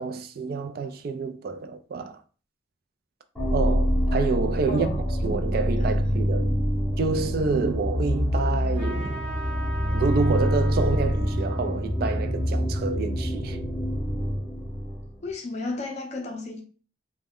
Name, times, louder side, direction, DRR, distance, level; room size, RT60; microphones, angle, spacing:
voice 1, 0.0-2.2 3.5-6.5 7.0-9.2 9.9-13.6, right 4 dB, 55° right, 0.3 m, -28 dB
sound 1, 3.3-15.2, equal, 5° left, 0.7 m, -26 dB
voice 2, 4.7-5.3 5.8-5.9 15.2-16.6, left 2 dB, 35° left, 0.5 m, -33 dB
Trumpet, 8.7-13.7, right 2 dB, 35° right, 0.8 m, -41 dB
2.1 x 2.0 x 3.5 m
head